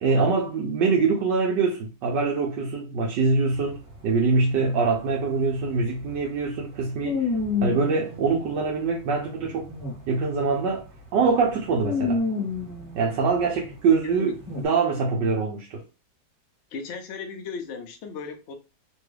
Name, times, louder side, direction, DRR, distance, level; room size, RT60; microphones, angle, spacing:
voice 1, 0.0-7.3 7.6-9.7 10.1-10.8 11.1-12.2 12.9-15.8, right 4 dB, 75° right, 1.3 m, -24 dB
sound 1, 3.5-10.2 10.5-10.8 11.2-13.7 14.4-14.6, left 4 dB, 30° right, 1.2 m, -30 dB
voice 2, 16.7-18.5, left 5 dB, 60° left, 0.7 m, -36 dB
3.4 x 2.3 x 3.2 m
omnidirectional pair, 2.0 m